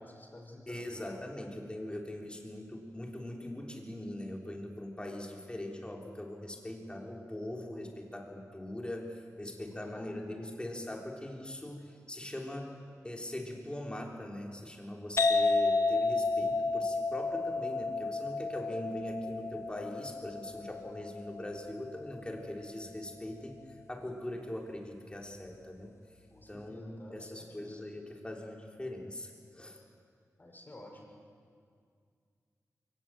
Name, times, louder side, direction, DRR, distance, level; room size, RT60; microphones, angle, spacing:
voice 1, 0.0-1.1 9.4-10.1 26.3-27.8 30.4-31.1, left 1 dB, 35° left, 0 dB, 5.5 m, -51 dB
voice 2, 0.7-12.8 13.0-23.6 23.9-26.0 26.5-29.8, left 1 dB, 15° left, 0 dB, 3.7 m, -41 dB
sound 1, 15.2-22.6, left 3 dB, 50° left, 1.4 m, -31 dB
23.0 x 18.0 x 7.7 m, 2.2 s
cardioid pair, 65°, 6 cm